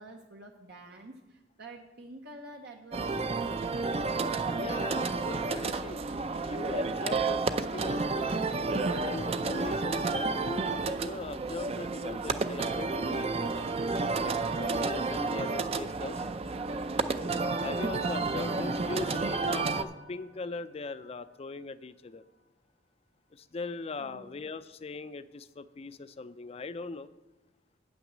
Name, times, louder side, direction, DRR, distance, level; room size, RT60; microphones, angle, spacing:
voice 1, 0.0-3.9 17.4-19.0 24.0-24.4, right 2 dB, 65° right, 2 dB, 0.8 m, -49 dB
sound 1, 2.9-19.8, right 3 dB, 35° right, 0.4 m, -31 dB
voice 2, 4.5-6.0 6.4-8.4 8.9-13.6 14.2-16.3 17.6-22.2 23.3-27.1, left 3 dB, 35° left, 13 dB, 0.4 m, -40 dB
sound 2, 16.4-21.4, equal, 85° left, 1.2 m, -49 dB
8.9 x 6.0 x 7.3 m, 1.0 s
head